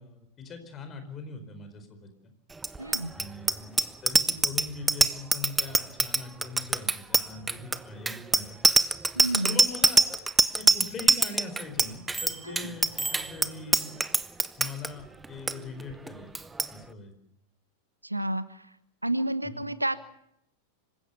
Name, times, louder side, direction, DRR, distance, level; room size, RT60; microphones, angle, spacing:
voice 1, 0.0-2.1 3.1-3.7 4.0-8.6 9.4-10.2 10.5-14.0 14.6-16.3 16.7-17.1 19.4-19.6, left 3 dB, 25° left, 8 dB, 4.5 m, -41 dB
Bicycle bell, 2.6-14.9 15.2-15.5 15.8-16.1 16.3-16.7, right 3 dB, 10° right, 0.9 m, -24 dB
voice 2, 2.8-3.1 9.1-9.6 12.4-12.7 18.0-18.7 19.0-20.0, right 1 dB, 85° right, 15 dB, 1.1 m, -30 dB
26.5 x 16.0 x 7.1 m, 0.76 s
figure-of-eight pair, 90°, 0 cm